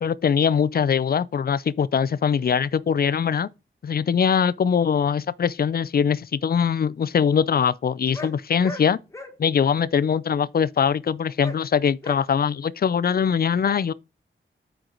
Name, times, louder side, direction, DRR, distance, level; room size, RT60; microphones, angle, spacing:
voice 1, 0.0-3.5 3.8-9.0 9.4-13.9, left 7 dB, 50° left, 0.4 m, -22 dB
sound 1, 8.1-8.3 8.6-8.8 9.1-9.3 11.4-11.6 12.0-12.2, left 1 dB, 15° left, 1.4 m, -36 dB
8.9 x 4.5 x 3.8 m
wide cardioid pair, 125°, 20 cm